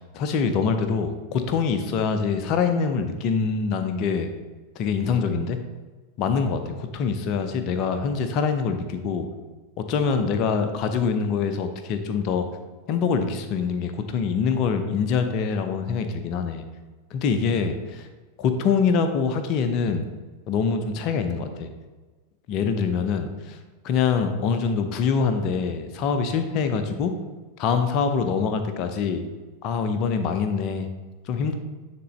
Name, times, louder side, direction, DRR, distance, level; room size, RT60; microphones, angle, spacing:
voice 1, 0.1-4.3 4.8-5.6 6.2-9.3 9.9-12.5 12.9-16.6 17.1-18.0 18.4-20.1 20.5-21.7 22.5-23.6 23.8-27.1 27.6-29.2 29.6-30.9 31.3-31.5, left 5 dB, 40° left, 8 dB, 0.7 m, -24 dB
9.4 x 3.7 x 3.2 m, 1.3 s
figure-of-eight pair, 90°, 0 cm